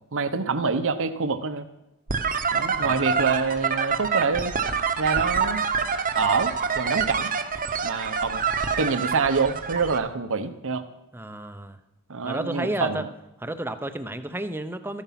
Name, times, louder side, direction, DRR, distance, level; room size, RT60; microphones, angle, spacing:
voice 1, 0.1-1.7 2.5-4.5 5.0-5.6 6.2-7.3 7.8-8.4 8.8-10.8 12.1-13.0, right 4 dB, 65° right, 10 dB, 0.9 m, -26 dB
sound 1, 2.1-10.0, right 6 dB, 40° right, 1.0 m, -26 dB
voice 2, 11.1-11.8 12.2-13.1 13.4-15.0, right 1 dB, 10° right, 10 dB, 0.7 m, -31 dB
13.5 x 11.0 x 5.9 m, 0.90 s
head